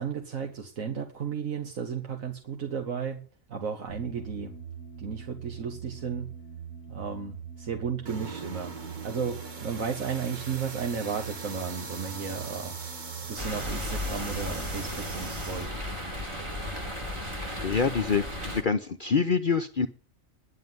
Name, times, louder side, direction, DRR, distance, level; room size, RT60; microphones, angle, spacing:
voice 1, 0.0-3.2 3.5-4.6 5.0-6.3 6.9-8.8 9.0-13.0 13.3-15.7, right 6 dB, 85° right, 3 dB, 1.8 m, -34 dB
sound 1, 3.9-17.1, right 7 dB, 70° right, 8.6 m, -43 dB
sound 2, 8.1-15.7, right 4 dB, 40° right, 1.2 m, -41 dB
sound 3, 13.4-18.6, left 1 dB, 20° right, 2.5 m, -35 dB
voice 2, 17.6-19.9, left 5 dB, 45° left, 7 dB, 0.8 m, -26 dB
11.0 x 7.5 x 9.5 m, 0.41 s
omnidirectional pair, 1.3 m